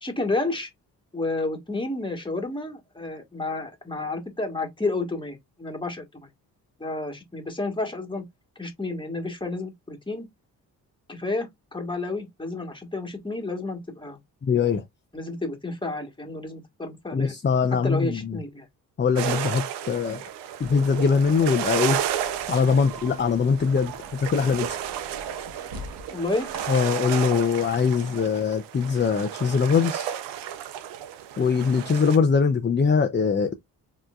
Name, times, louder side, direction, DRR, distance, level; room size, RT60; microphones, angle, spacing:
voice 1, 0.0-0.7 1.1-6.3 6.8-8.2 8.6-10.3 11.1-14.2 15.1-17.4 17.8-18.7 26.1-26.5, left 2 dB, 10° left, 1.7 m, -30 dB
voice 2, 14.4-14.8 17.1-18.4 19.0-20.2 20.6-22.0 22.5-24.8 26.7-30.1 31.4-33.5, left 5 dB, 25° left, 0.7 m, -22 dB
sound 1, 19.2-32.2, right 10 dB, 85° right, 0.7 m, -33 dB
sound 2, 20.6-27.2, right 2 dB, 60° right, 1.1 m, -43 dB
4.4 x 3.1 x 2.4 m
supercardioid pair, 55°, 40 cm